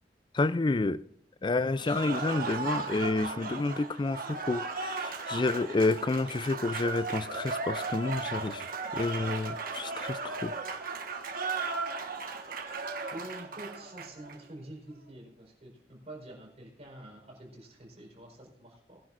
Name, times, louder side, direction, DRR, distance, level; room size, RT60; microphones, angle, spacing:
voice 1, 0.3-1.0 1.4-8.7 8.9-10.5, left 3 dB, 25° left, 0.4 m, -29 dB
Cheering / Applause, 1.8-14.4, right 4 dB, 55° right, 1.4 m, -36 dB
voice 2, 13.1-19.0, right 1 dB, 40° right, 4.5 m, -47 dB
20.5 x 10.5 x 2.5 m
head